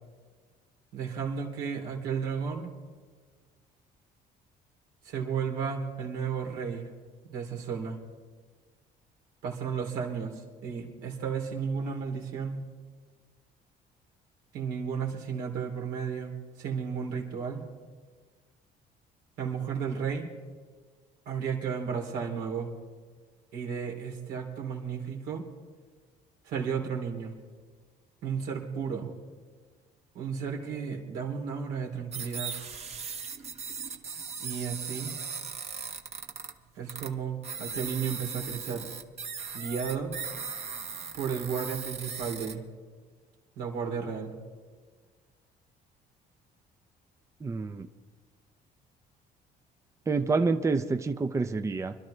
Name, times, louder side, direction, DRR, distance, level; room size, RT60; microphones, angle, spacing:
voice 1, 0.9-2.7 5.0-6.9 7.2-8.0 9.4-12.6 14.5-17.6 19.4-20.3 21.2-22.7 23.5-25.4 26.4-27.3 28.2-29.1 30.1-32.5 34.4-35.1 36.7-38.9 39.5-40.1 41.1-42.6 43.6-44.3, right 6 dB, 90° right, 0 dB, 3.1 m, -33 dB
sound 1, 32.1-36.5 36.9-37.1 37.4-42.5, right 6 dB, 40° right, 1.0 m, -38 dB
voice 2, 47.4-47.9 50.1-51.9, right 4 dB, 15° right, 8 dB, 0.6 m, -28 dB
25.5 x 12.0 x 3.3 m, 1.5 s
cardioid pair, 110°, 17 cm